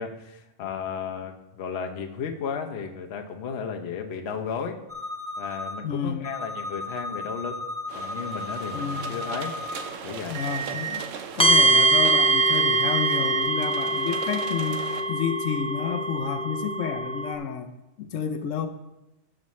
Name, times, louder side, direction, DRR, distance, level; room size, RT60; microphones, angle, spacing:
voice 1, 0.0-4.8 5.4-7.6 7.9-9.6 10.0-10.4, left 6 dB, 60° left, 5 dB, 1.0 m, -34 dB
sound 1, 4.9-5.7 6.2-9.8 10.3-11.0 11.5-13.4, right 2 dB, 25° right, 1.3 m, -34 dB
voice 2, 5.8-6.3 8.7-9.2 10.3-11.0 11.3-17.7 18.0-18.7, left 7 dB, 85° left, 6 dB, 1.0 m, -30 dB
sound 2, 7.9-15.0, right 6 dB, 85° right, 1.1 m, -39 dB
sound 3, 11.4-17.3, right 2 dB, 5° left, 0.5 m, -23 dB
12.5 x 7.5 x 3.1 m, 0.97 s
omnidirectional pair, 1.3 m